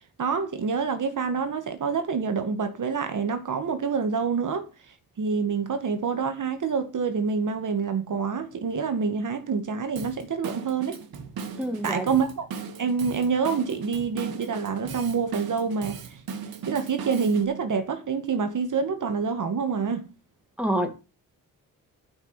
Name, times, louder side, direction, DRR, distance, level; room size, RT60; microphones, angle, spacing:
voice 1, 0.2-4.7 5.2-11.0 11.8-12.5 12.8-16.0 16.7-20.1, right 5 dB, 60° right, 2.1 m, -27 dB
Drum kit / Drum, 10.0-17.5, right 6 dB, 90° right, 2.1 m, -38 dB
voice 2, 11.6-12.1 20.6-20.9, right 1 dB, 5° right, 2.2 m, -26 dB
12.5 x 6.1 x 7.2 m
wide cardioid pair, 130°, 35 cm